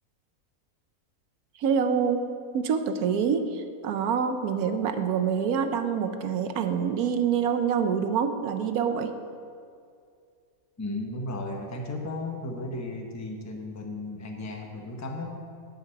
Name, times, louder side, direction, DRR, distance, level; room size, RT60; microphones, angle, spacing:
voice 1, 1.6-2.2 2.5-9.1, right 7 dB, 80° right, 8 dB, 1.2 m, -26 dB
voice 2, 10.8-15.5, left 2 dB, 15° left, 2 dB, 0.8 m, -35 dB
10.5 x 5.2 x 8.3 m, 2.3 s
omnidirectional pair, 1.6 m